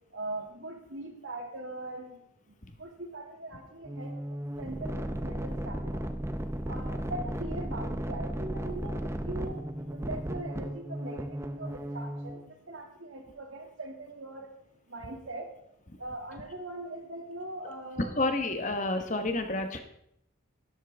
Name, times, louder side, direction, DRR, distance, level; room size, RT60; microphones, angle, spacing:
voice 1, 0.1-2.2 2.8-4.1 4.6-6.1 6.7-9.6 9.9-12.4 12.7-14.5 14.9-15.5 16.0-18.2, right 2 dB, 75° right, 2 dB, 2.1 m, -41 dB
sound 1, 3.8-12.5, right 1 dB, 15° right, 0.5 m, -35 dB
voice 2, 18.0-19.8, left 2 dB, 40° left, 7 dB, 1.0 m, -29 dB
12.0 x 11.5 x 3.4 m, 0.75 s
head